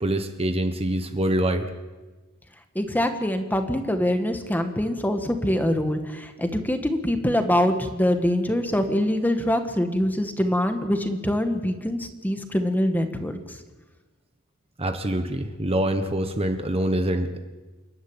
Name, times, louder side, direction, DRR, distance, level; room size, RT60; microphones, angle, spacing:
voice 1, 0.0-1.7 14.8-17.4, right 1 dB, 25° right, 7 dB, 1.2 m, -25 dB
voice 2, 2.8-13.6, left 1 dB, 10° left, 6 dB, 1.7 m, -24 dB
28.5 x 12.0 x 9.0 m, 1.2 s
head